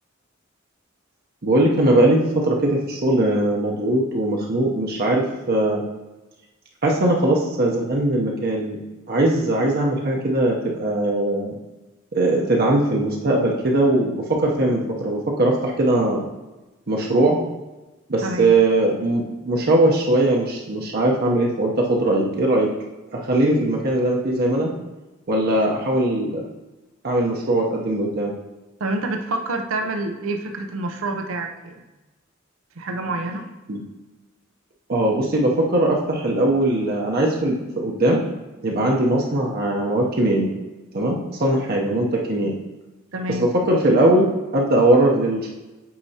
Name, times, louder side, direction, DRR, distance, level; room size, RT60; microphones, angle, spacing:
voice 1, 1.4-5.8 6.8-8.8 9.1-11.5 12.1-16.2 16.9-17.4 18.1-22.7 23.1-24.7 25.3-26.4 27.0-28.3 33.7-33.8 34.9-38.2 38.6-40.5 40.9-42.5 43.4-45.5, right 1 dB, 50° right, -2 dB, 0.7 m, -20 dB
voice 2, 18.2-18.5 28.8-31.8 32.8-33.5 43.1-43.5, right 2 dB, 85° right, 5 dB, 0.6 m, -27 dB
8.5 x 4.7 x 2.8 m, 1.1 s
head